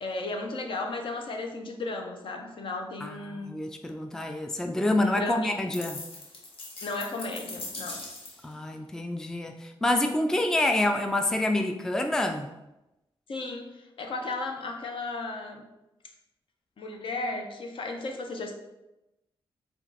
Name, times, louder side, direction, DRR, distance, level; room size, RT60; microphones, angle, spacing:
voice 1, 0.0-3.6 5.0-5.5 6.8-8.1 13.3-15.7 16.8-18.5, left 3 dB, 60° left, 3 dB, 0.7 m, -35 dB
voice 2, 3.0-6.0 8.4-12.5, left 1 dB, 5° left, 4 dB, 0.3 m, -27 dB
sound 1, 5.7-8.5, left 2 dB, 75° left, 1.0 m, -40 dB
4.3 x 2.4 x 4.0 m, 0.95 s
cardioid pair, 85°, 10 cm